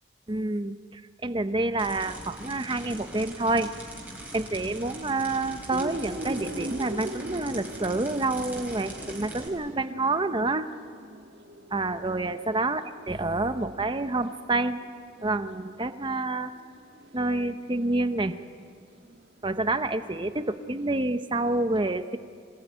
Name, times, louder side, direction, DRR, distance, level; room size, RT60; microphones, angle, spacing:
voice 1, 0.3-3.7 4.3-10.7 11.7-14.8 15.2-16.5 17.1-18.3 19.4-22.2, right 2 dB, 25° right, 10 dB, 0.8 m, -28 dB
sound 1, 1.8-9.5, right 1 dB, 10° right, 4.0 m, -42 dB
sound 2, 5.7-21.6, right 1 dB, 60° right, 1.9 m, -43 dB
25.5 x 19.0 x 9.4 m, 2.2 s
head